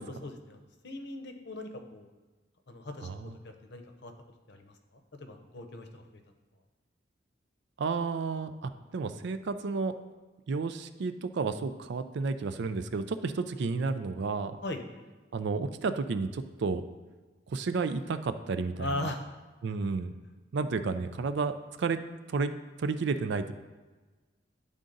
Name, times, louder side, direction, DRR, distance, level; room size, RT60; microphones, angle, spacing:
voice 1, 0.0-2.1 2.7-4.1 4.5-4.7 5.2-6.2 14.6-14.8 18.8-19.2, left 2 dB, 65° left, 6 dB, 0.7 m, -39 dB
voice 2, 3.0-3.4 7.8-9.9 10.5-14.6 15.3-16.8 17.5-19.1 19.6-20.2 20.5-22.0 22.3-22.5 22.8-23.5, right 4 dB, 65° right, 10 dB, 0.4 m, -31 dB
10.0 x 3.7 x 3.9 m, 1.3 s
head